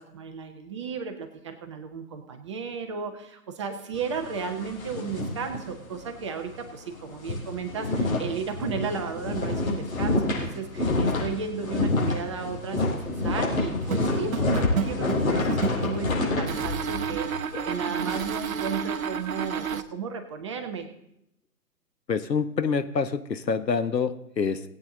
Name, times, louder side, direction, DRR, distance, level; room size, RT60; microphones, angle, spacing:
voice 1, 0.0-20.9, right 5 dB, 20° right, 5 dB, 0.7 m, -34 dB
sound 1, 3.9-6.2 6.5-6.7 7.0-18.2, left 2 dB, 55° left, 5.6 m, -28 dB
sound 2, 13.8-16.0 16.5-19.8, right 7 dB, 55° right, 0.9 m, -30 dB
voice 2, 22.1-24.6, left 5 dB, 85° left, 10 dB, 1.2 m, -26 dB
19.0 x 8.7 x 3.8 m, 0.80 s
figure-of-eight pair, 135°, 49 cm